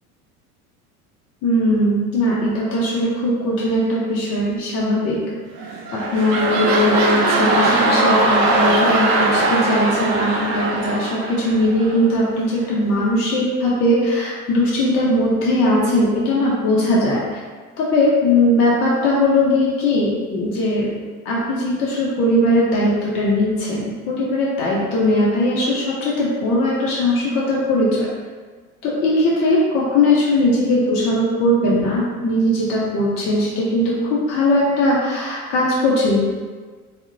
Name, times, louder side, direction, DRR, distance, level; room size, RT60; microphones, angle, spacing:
voice 1, 1.4-5.2 5.9-17.2 17.8-20.9 21.2-28.1 28.8-36.2, left 1 dB, 30° left, -6 dB, 0.5 m, -19 dB
sound 1, 5.6-12.1 12.6-12.7, right 2 dB, 40° right, 0.4 m, -20 dB
2.4 x 2.0 x 2.6 m, 1.4 s
figure-of-eight pair, 75°, 45 cm